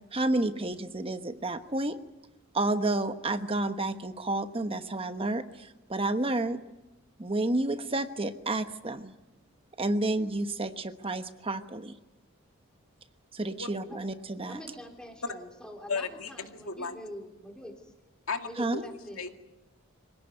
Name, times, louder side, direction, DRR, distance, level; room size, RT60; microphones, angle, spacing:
voice 1, 0.1-2.0 2.5-6.6 7.2-9.1 9.8-11.9 13.3-14.6 18.6-18.8, right 2 dB, 25° right, 9 dB, 1.1 m, -30 dB
voice 2, 14.5-17.9 18.4-19.2, left 1 dB, 5° left, 2 dB, 3.7 m, -44 dB
voice 3, 15.9-17.0 18.3-18.8 19.2-19.4, left 4 dB, 75° left, 5 dB, 2.3 m, -35 dB
25.5 x 17.5 x 9.6 m, 1.0 s
head